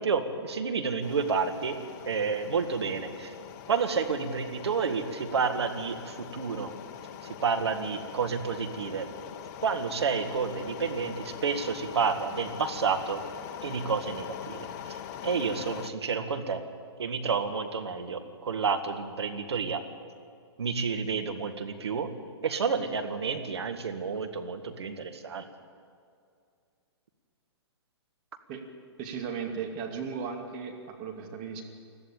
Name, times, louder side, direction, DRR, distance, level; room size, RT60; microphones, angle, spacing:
voice 1, 0.0-1.8 2.1-3.3 3.7-6.7 7.4-9.1 9.6-13.2 13.6-15.0 15.2-16.6 17.0-19.8 20.6-22.1 22.4-25.5, right 5 dB, 70° right, 7 dB, 2.0 m, -30 dB
sound 1, 1.0-15.9, left 9 dB, 40° left, 1.1 m, -43 dB
voice 2, 29.0-31.6, right 6 dB, 35° right, 2 dB, 2.5 m, -36 dB
21.0 x 14.0 x 8.8 m, 2.3 s
figure-of-eight pair, 120°, 14 cm